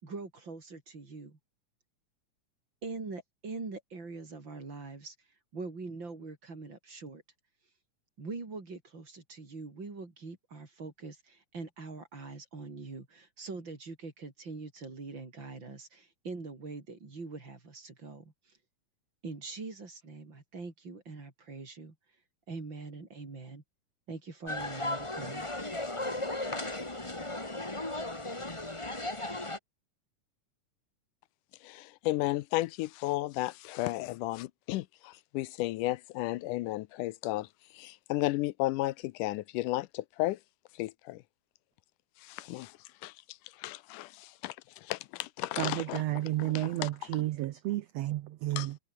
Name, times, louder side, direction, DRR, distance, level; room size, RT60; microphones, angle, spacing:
voice 1, 0.0-1.4 2.8-5.1 5.5-7.2 8.2-18.6 19.2-21.9 22.5-23.6 24.1-25.5, right 3 dB, 35° right, 4.8 m, -43 dB
sound 1, 24.5-29.6, left 2 dB, 10° left, 1.9 m, -36 dB
voice 2, 31.6-37.5 37.7-40.4 40.7-41.2 42.2-42.8 43.0-46.0 46.4-46.9 48.6-48.7, left 18 dB, 85° left, 2.2 m, -34 dB
voice 3, 45.6-48.8, right 15 dB, 75° right, 1.6 m, -32 dB
omnidirectional pair, 3.6 m